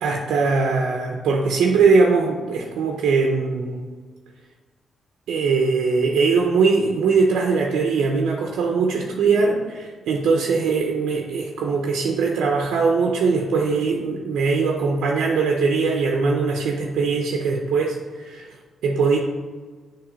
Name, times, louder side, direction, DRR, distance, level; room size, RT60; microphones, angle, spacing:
voice 1, 0.0-3.9 5.3-18.5 18.8-19.2, right 4 dB, 90° right, 0 dB, 0.6 m, -21 dB
7.2 x 3.1 x 5.1 m, 1.4 s
cardioid pair, 85°, 0 cm